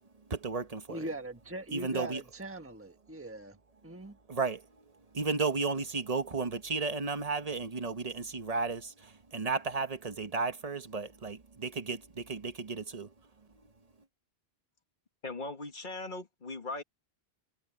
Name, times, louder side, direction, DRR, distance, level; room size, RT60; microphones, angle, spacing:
voice 1, 0.3-1.1 1.7-2.2 4.3-4.7 5.1-13.1, right 4 dB, 40° right, 1.2 m, -34 dB
voice 2, 0.9-3.6 3.8-4.2, right 2 dB, 15° right, 1.4 m, -41 dB
voice 3, 15.2-16.8, left 2 dB, 50° left, 1.9 m, -39 dB
omnidirectional pair, 1.1 m